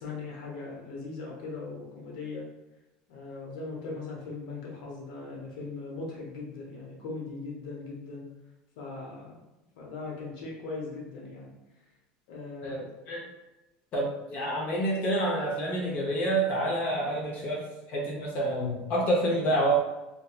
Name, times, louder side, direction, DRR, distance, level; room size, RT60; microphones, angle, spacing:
voice 1, 0.0-2.4 3.1-8.3 8.8-9.4 9.8-11.5 12.3-12.9, left 3 dB, 80° left, -3 dB, 0.9 m, -39 dB
voice 2, 12.6-13.2 13.9-19.7, right 1 dB, 45° left, -2 dB, 0.6 m, -28 dB
2.7 x 2.2 x 2.3 m, 0.99 s
supercardioid pair, 125°, 4 cm